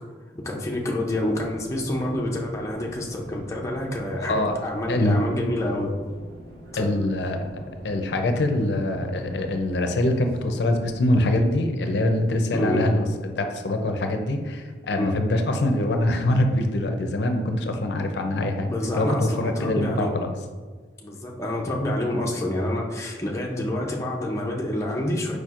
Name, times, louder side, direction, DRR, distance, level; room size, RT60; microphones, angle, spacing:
voice 1, 0.3-6.0 6.7-7.0 12.5-12.9 15.0-15.2 18.7-20.1 21.0-25.4, left 1 dB, 15° left, -2 dB, 0.5 m, -28 dB
sound 1, 1.1-11.3, right 1 dB, 65° right, 1.2 m, -44 dB
voice 2, 4.2-4.5 4.9-5.3 6.8-7.5 7.8-20.3, left 1 dB, 70° left, 5 dB, 0.5 m, -24 dB
4.8 x 4.3 x 2.4 m, 1.5 s
head